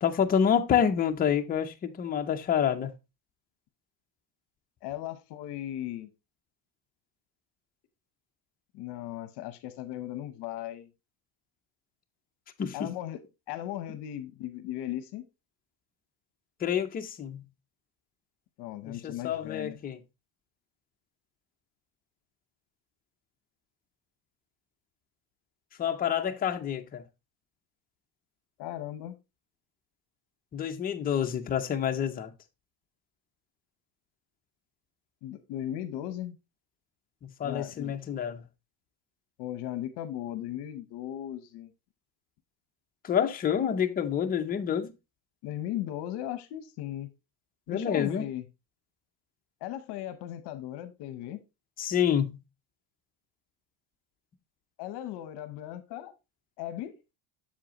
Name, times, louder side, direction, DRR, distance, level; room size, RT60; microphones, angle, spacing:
voice 1, 0.0-2.9 12.6-12.9 16.6-17.4 18.8-20.0 25.8-27.0 30.5-32.3 37.2-38.4 43.0-44.9 47.7-48.3 51.8-52.4, left 8 dB, 20° left, 0.4 m, -28 dB
voice 2, 4.8-6.1 8.7-10.9 12.7-15.2 18.6-19.8 28.6-29.2 35.2-36.4 37.4-37.9 39.4-41.7 45.4-47.1 47.7-48.5 49.6-51.4 54.8-56.1 56.6-57.0, left 12 dB, 60° left, 0.9 m, -37 dB
7.5 x 7.0 x 2.9 m
cardioid pair, 175°, 46 cm